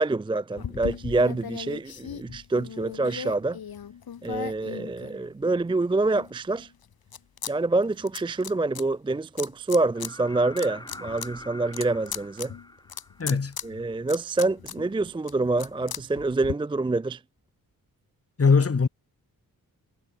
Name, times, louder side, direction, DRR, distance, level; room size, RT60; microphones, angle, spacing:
voice 1, 0.0-3.6 4.2-6.7 7.5-12.5 13.3-13.4 13.6-17.2, right 2 dB, 15° right, 0.4 m, -26 dB
sound 1, 0.6-5.6 6.1-7.5 7.8-8.8 9.4-10.1 10.5-16.5, left 8 dB, 75° left, 2.5 m, -38 dB
sound 2, 9.9-13.7 15.6-15.7, left 1 dB, 10° left, 3.0 m, -44 dB
voice 2, 13.2-13.6 18.4-18.9, left 5 dB, 40° left, 3.0 m, -20 dB
wide cardioid pair, 110°, 37 cm